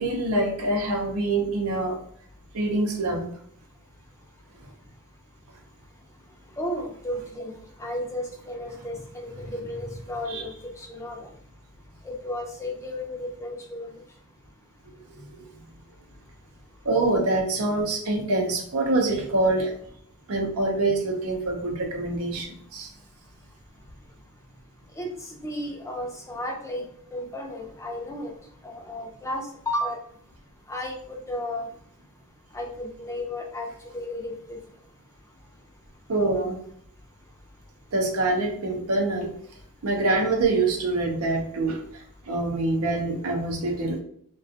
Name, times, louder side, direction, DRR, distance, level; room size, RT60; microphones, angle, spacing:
voice 1, 0.0-2.0 2.5-3.3 9.4-9.5 10.3-10.5 16.9-19.7 20.3-22.9 36.1-36.6 37.9-39.3 39.8-41.8 42.3-44.0, right 2 dB, 80° right, 2 dB, 0.6 m, -25 dB
voice 2, 6.6-7.5 7.8-10.5 10.9-11.2 12.1-13.9 25.0-25.1 25.4-26.8 27.1-28.3 28.6-30.0 30.7-31.7 32.5-33.7 33.9-34.6, left 1 dB, 15° left, 0 dB, 0.5 m, -33 dB
2.4 x 2.3 x 2.5 m, 0.62 s
head